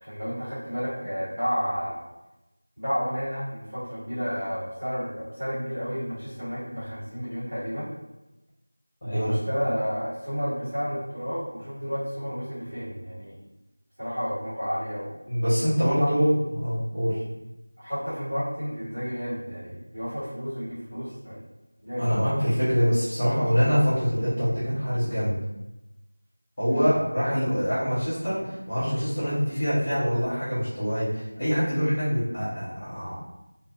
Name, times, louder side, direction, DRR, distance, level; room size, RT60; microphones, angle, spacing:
voice 1, 0.0-2.0 2.8-7.9 9.0-13.3 14.0-15.2 16.0-16.1 17.8-21.4 21.8-22.1 26.7-26.9, equal, 40° right, -13 dB, 1.1 m, -31 dB
voice 2, 9.0-9.4 15.3-17.2 22.0-25.3 26.6-33.1, equal, 20° left, -14 dB, 0.6 m, -24 dB
2.4 x 2.3 x 2.2 m, 0.98 s
figure-of-eight pair, 180°, 0 cm